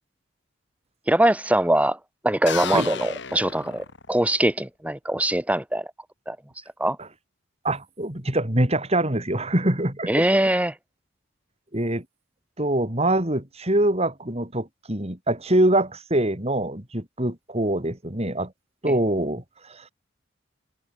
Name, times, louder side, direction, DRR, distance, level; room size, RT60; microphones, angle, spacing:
voice 1, 1.1-2.0 2.2-5.9 6.3-6.4 6.8-7.0 10.1-10.7 18.9-19.0, right 1 dB, 5° right, 1.3 m, -22 dB
sound 1, 2.5-4.4, left 6 dB, 60° left, 3.6 m, -33 dB
voice 2, 7.6-10.2 11.7-12.0 12.6-18.5 18.8-19.4 19.7-19.8, right 1 dB, 30° right, 3.6 m, -24 dB
head